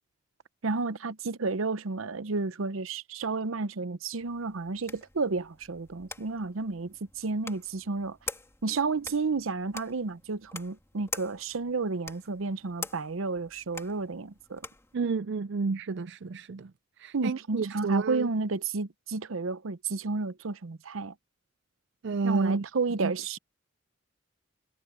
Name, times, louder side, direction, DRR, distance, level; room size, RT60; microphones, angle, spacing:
voice 1, 0.6-8.2 8.6-14.6 17.1-21.1 22.2-23.4, right 4 dB, 90° right, 0.8 m, -31 dB
sound 1, 4.2-14.9, left 3 dB, 15° left, 2.8 m, -45 dB
voice 2, 14.9-16.7 17.0-18.3 22.0-22.6 23.0-23.1, right 4 dB, 60° right, 0.5 m, -30 dB
head